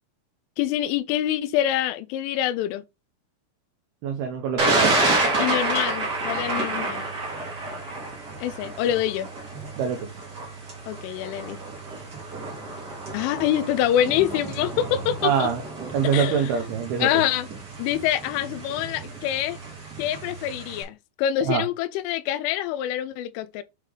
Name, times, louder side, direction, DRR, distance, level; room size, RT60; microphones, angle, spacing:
voice 1, 0.6-2.8 5.4-7.1 8.4-9.3 10.9-11.6 13.1-15.5 16.1-16.5 17.0-17.5 17.8-19.6 20.0-23.6, left 12 dB, 90° left, 3.0 m, -25 dB
voice 2, 4.0-5.0 9.8-10.1 15.2-15.6 15.9-17.1 21.4-21.6, right 7 dB, 85° right, 2.2 m, -24 dB
Thunder, 4.6-20.8, right 2 dB, 55° right, 1.0 m, -29 dB
7.9 x 3.3 x 3.7 m
omnidirectional pair, 5.5 m